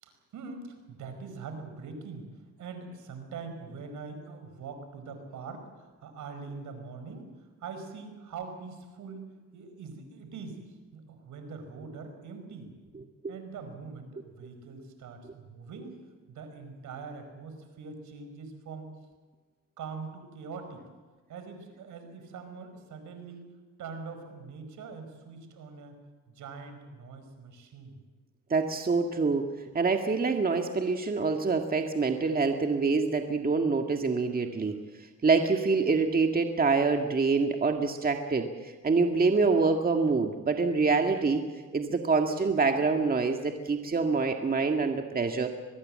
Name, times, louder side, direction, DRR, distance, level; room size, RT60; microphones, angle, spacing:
voice 1, 0.0-7.3 7.6-10.6 10.9-12.7 13.3-16.0 16.3-18.9 19.8-20.8 21.3-23.4 23.8-25.9 26.3-28.0, right 4 dB, 75° right, 7 dB, 4.9 m, -43 dB
voice 2, 28.5-29.5 29.7-34.8 35.2-41.4 41.7-45.5, right 4 dB, 30° right, 4 dB, 1.9 m, -26 dB
23.5 x 20.5 x 7.7 m, 1.3 s
cardioid pair, 90°, 30 cm